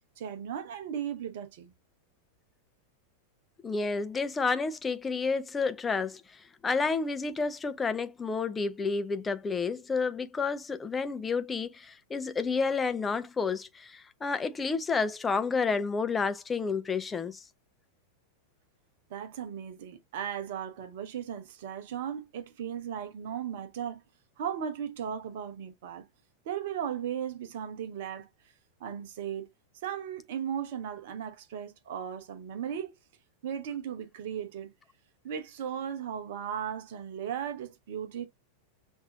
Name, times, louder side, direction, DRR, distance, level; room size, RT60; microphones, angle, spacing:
voice 1, 0.2-1.7 19.1-24.0 24.4-26.0 26.4-28.3 28.8-29.5 29.8-32.9 33.4-34.7 35.2-38.3, right 8 dB, 55° right, 0.9 m, -36 dB
voice 2, 3.6-17.4, left 4 dB, 15° left, 0.5 m, -30 dB
5.9 x 2.7 x 2.7 m
figure-of-eight pair, 90°, 0 cm